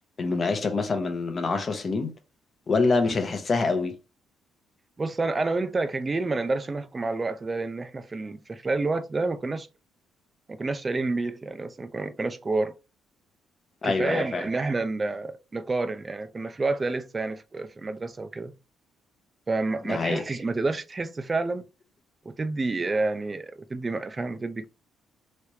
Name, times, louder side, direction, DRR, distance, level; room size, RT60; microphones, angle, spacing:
voice 1, 0.2-2.1 2.7-4.0 13.8-14.5 19.9-20.2, left 3 dB, 30° left, 0.8 m, -25 dB
voice 2, 5.0-9.7 10.5-12.7 13.8-18.5 19.5-21.6 22.3-24.7, right 3 dB, 20° right, 0.5 m, -29 dB
3.3 x 3.1 x 2.7 m
cardioid pair, 135°, 0 cm